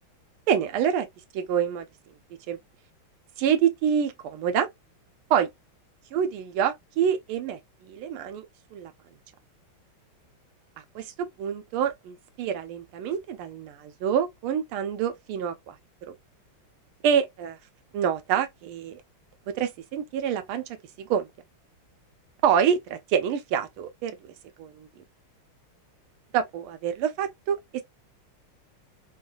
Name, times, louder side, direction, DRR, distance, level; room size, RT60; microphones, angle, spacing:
voice 1, 0.5-1.1 1.3-1.9 2.5-2.6 3.4-4.7 5.3-5.5 6.1-8.5 8.7-8.9 10.9-11.1 11.4-15.7 17.0-17.6 17.9-19.0 19.6-20.6 21.0-21.3 22.4-24.2 24.6-24.9 26.3-27.8, right 8 dB, 85° right, 1.5 m, -26 dB
3.6 x 2.3 x 2.2 m
omnidirectional pair, 2.3 m